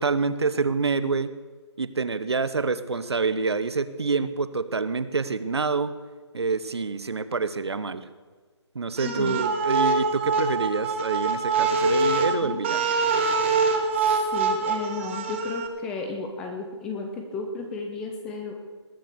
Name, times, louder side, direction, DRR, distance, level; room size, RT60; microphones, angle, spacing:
voice 1, 0.0-1.3 1.8-5.9 6.3-8.0 8.7-12.9, right 4 dB, 65° right, 14 dB, 1.0 m, -27 dB
voice 2, 9.0-9.4 12.4-12.6 14.3-18.5, left 4 dB, 5° left, 3 dB, 0.4 m, -33 dB
sound 1, 9.0-15.7, right 4 dB, 25° right, 1.4 m, -24 dB
20.0 x 7.8 x 6.8 m, 1.5 s
figure-of-eight pair, 155°, 15 cm